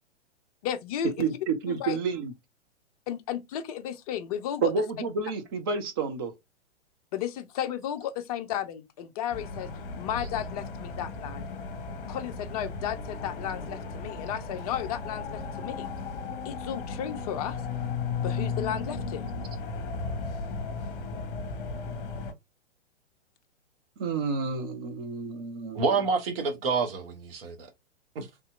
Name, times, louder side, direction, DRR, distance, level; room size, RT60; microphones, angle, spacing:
voice 1, 0.6-1.4 1.7-2.0 3.1-4.7 7.1-9.7 9.9-11.5 12.1-15.9 16.4-17.6 18.2-19.2, left 10 dB, 35° left, 0.5 m, -34 dB
voice 2, 1.2-2.3 4.6-6.3 24.0-25.9, right 5 dB, 20° right, 0.3 m, -30 dB
sound 1, 9.3-22.3, left 4 dB, 50° left, 0.9 m, -35 dB
voice 3, 25.7-27.7 28.1-28.3, right 4 dB, 50° right, 1.1 m, -28 dB
3.5 x 2.8 x 2.3 m
figure-of-eight pair, 110°, 35 cm